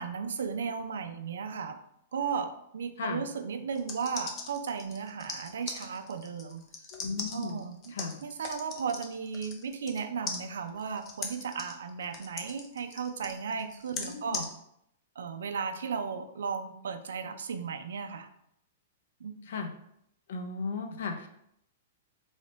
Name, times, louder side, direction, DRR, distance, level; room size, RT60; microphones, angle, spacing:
voice 1, 0.0-1.8 2.1-6.6 7.3-7.9 8.2-14.5 15.2-18.3 19.2-19.3, right 6 dB, 90° right, 8 dB, 0.4 m, -35 dB
sound 1, 3.7-10.0 10.3-14.5, left 4 dB, 20° left, 0.5 m, -40 dB
voice 2, 6.9-7.6 7.9-8.2 14.0-14.4 19.4-19.7 20.3-21.3, left 4 dB, 70° left, 4 dB, 0.6 m, -36 dB
3.1 x 2.1 x 4.0 m, 0.75 s
hypercardioid pair, 155°, 0 cm